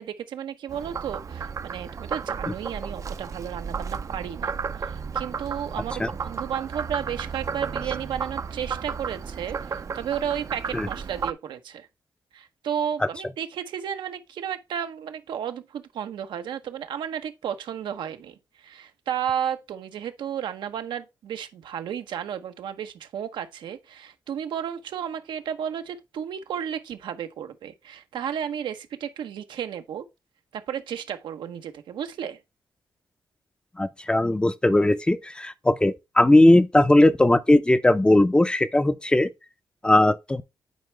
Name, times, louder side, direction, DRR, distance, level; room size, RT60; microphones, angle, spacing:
voice 1, 0.0-11.9 12.3-30.1 30.5-32.4, right 9 dB, 90° right, 0.8 m, -33 dB
Frog, 0.7-11.3, right 6 dB, 45° right, 0.5 m, -33 dB
voice 2, 33.8-39.3 39.8-40.4, left 1 dB, 10° left, 0.5 m, -19 dB
9.4 x 4.5 x 3.3 m
cardioid pair, 95°, 8 cm